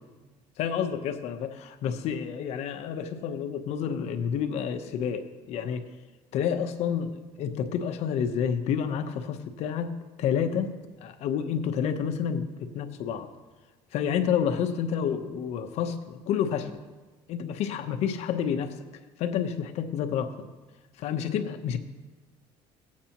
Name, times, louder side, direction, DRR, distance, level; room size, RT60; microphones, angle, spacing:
voice 1, 0.6-5.9 6.3-10.7 11.0-13.3 13.9-16.8 17.3-18.7 19.2-20.5 21.0-21.8, left 8 dB, 65° left, 7 dB, 0.9 m, -29 dB
16.0 x 8.5 x 2.9 m, 1.2 s
cardioid pair, 130°, 12 cm